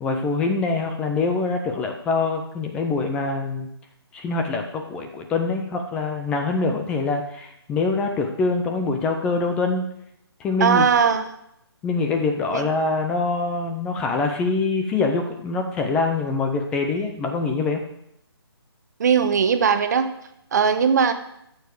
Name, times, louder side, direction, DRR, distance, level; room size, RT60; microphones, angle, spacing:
voice 1, 0.0-3.7 4.1-9.8 10.4-10.8 11.8-17.8, left 3 dB, 5° left, 4 dB, 0.5 m, -24 dB
voice 2, 10.6-11.3 12.5-12.7 19.0-20.1 20.5-21.1, right 6 dB, 40° right, 9 dB, 1.0 m, -19 dB
13.5 x 7.1 x 4.8 m, 0.76 s
hypercardioid pair, 165°, 14 cm